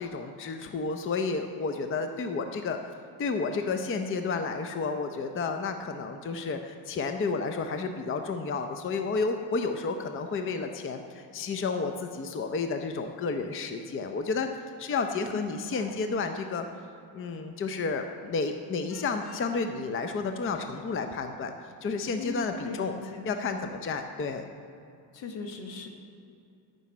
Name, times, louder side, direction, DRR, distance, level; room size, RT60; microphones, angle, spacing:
voice 1, 0.0-2.8 3.2-14.5 14.8-16.7 17.1-21.5 21.8-22.9 23.3-24.4, left 4 dB, 25° left, 6 dB, 0.6 m, -31 dB
voice 2, 15.3-16.2 22.2-23.3 25.1-25.9, left 4 dB, 60° left, 4 dB, 1.6 m, -39 dB
Vehicle horn car horn honking, 18.9-19.5, left 3 dB, 45° left, 2.1 m, -51 dB
11.5 x 5.5 x 8.4 m, 2.6 s
cardioid pair, 115°, 49 cm